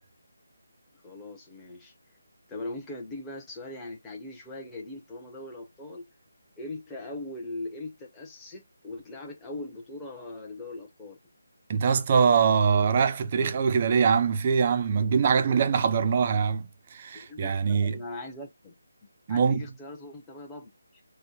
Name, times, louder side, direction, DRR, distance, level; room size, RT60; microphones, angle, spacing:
voice 1, 1.0-1.9 2.5-6.0 6.6-11.2 17.1-18.7 19.3-21.0, left 2 dB, 10° left, 1.0 m, -40 dB
voice 2, 11.7-18.0 19.3-19.6, right 6 dB, 30° right, 0.5 m, -23 dB
4.3 x 2.2 x 4.1 m
figure-of-eight pair, 165°, 0 cm